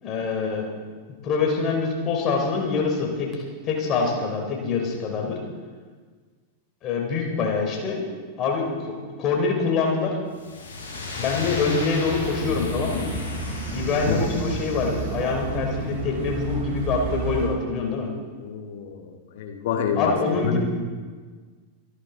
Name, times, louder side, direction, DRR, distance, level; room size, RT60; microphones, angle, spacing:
voice 1, 0.0-0.7 1.2-5.4 6.8-8.0 8.4-10.2 11.1-13.1 13.7-18.1 20.0-20.6, left 4 dB, 35° left, 0 dB, 3.5 m, -25 dB
sound 1, 10.3-15.3, left 3 dB, 75° left, 4.9 m, -35 dB
sound 2, 12.1-17.5, right 4 dB, 50° right, 3.3 m, -31 dB
voice 2, 18.4-20.1 20.4-20.6, left 7 dB, 55° left, 3 dB, 1.8 m, -27 dB
25.0 x 11.5 x 3.9 m, 1.5 s
figure-of-eight pair, 90°, 0 cm